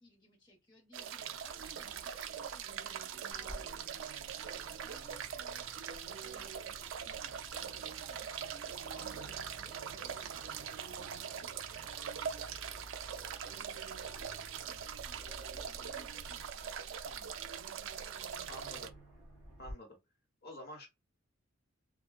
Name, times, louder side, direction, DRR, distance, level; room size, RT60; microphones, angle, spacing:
voice 1, 0.0-5.8 6.2-17.2, equal, 20° left, 1.1 m, -61 dB
sound 1, 0.9-18.9, right 8 dB, 65° right, 0.4 m, -42 dB
Aircraft, 3.3-19.7, equal, ahead, 1.5 m, -54 dB
voice 2, 17.0-17.4 18.5-18.9 19.6-20.0 20.4-20.9, left 1 dB, 50° left, 1.1 m, -49 dB
3.5 x 2.2 x 2.3 m
head